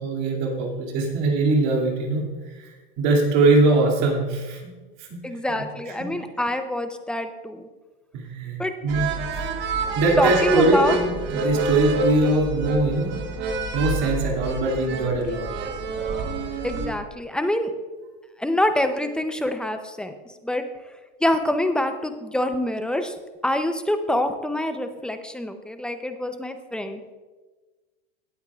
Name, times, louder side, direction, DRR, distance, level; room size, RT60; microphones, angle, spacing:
voice 1, 0.0-4.6 5.0-5.1 5.9-6.0 8.1-9.5 9.9-13.2 13.7-15.5, right 2 dB, 55° right, 0 dB, 2.4 m, -22 dB
voice 2, 5.2-7.7 8.6-8.7 9.8-11.0 16.6-17.7 18.4-20.1 20.4-20.6 21.2-23.1 23.4-27.0, left 1 dB, 5° left, 8 dB, 0.5 m, -25 dB
sound 1, 8.9-16.9, right 3 dB, 35° right, 1.2 m, -28 dB
17.5 x 8.0 x 2.4 m, 1.3 s
supercardioid pair, 135°, 30 cm